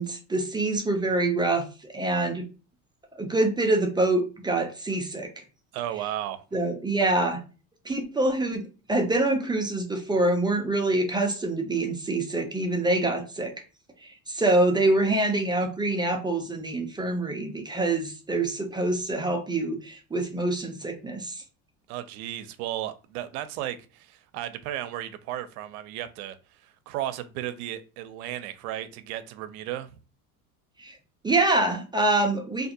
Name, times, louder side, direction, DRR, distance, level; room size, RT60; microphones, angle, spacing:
voice 1, 0.0-1.6 1.9-2.4 3.2-5.4 6.5-7.4 7.9-13.5 14.0-21.4 30.8-31.0 31.2-32.7, right 2 dB, 10° right, 0.4 m, -25 dB
voice 2, 5.7-6.4 21.9-29.9, right 12 dB, 75° right, 0.5 m, -34 dB
2.5 x 2.4 x 2.7 m
supercardioid pair, 95°, 44 cm